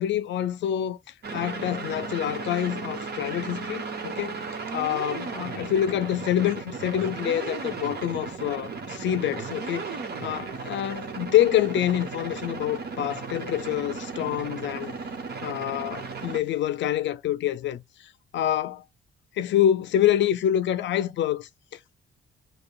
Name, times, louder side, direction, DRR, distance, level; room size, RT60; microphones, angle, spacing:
voice 1, 0.0-15.0 15.4-18.8 19.3-21.9, left 11 dB, 65° left, 0.4 m, -27 dB
sound 1, 1.2-16.4, right 4 dB, 55° right, 1.1 m, -35 dB
6.6 x 2.2 x 2.3 m
cardioid pair, 90°, 20 cm